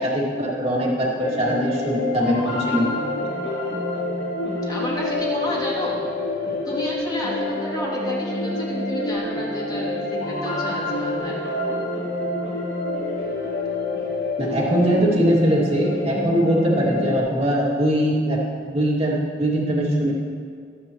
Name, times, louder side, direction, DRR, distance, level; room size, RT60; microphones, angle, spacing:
voice 1, 0.0-2.9 14.4-20.1, equal, 35° right, -4 dB, 2.2 m, -21 dB
sound 1, 1.2-17.2, left 2 dB, 85° left, 3.4 m, -27 dB
voice 2, 4.7-6.0 6.6-11.4, equal, 25° left, -6 dB, 2.6 m, -31 dB
23.0 x 8.7 x 3.0 m, 2.1 s
head